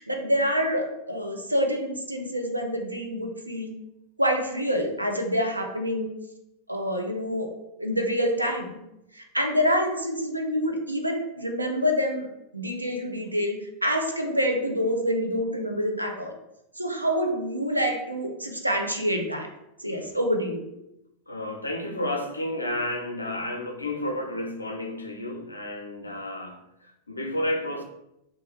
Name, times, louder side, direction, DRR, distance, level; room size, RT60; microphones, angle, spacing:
voice 1, 0.0-3.7 4.2-6.1 6.7-7.5 7.8-8.8 9.1-12.3 12.5-16.3 16.8-19.5 19.8-20.6, equal, 85° right, 3 dB, 0.4 m, -27 dB
voice 2, 21.3-27.8, left 1 dB, 80° left, 3 dB, 0.4 m, -31 dB
2.3 x 2.1 x 3.1 m, 0.85 s
figure-of-eight pair, 90°, 0 cm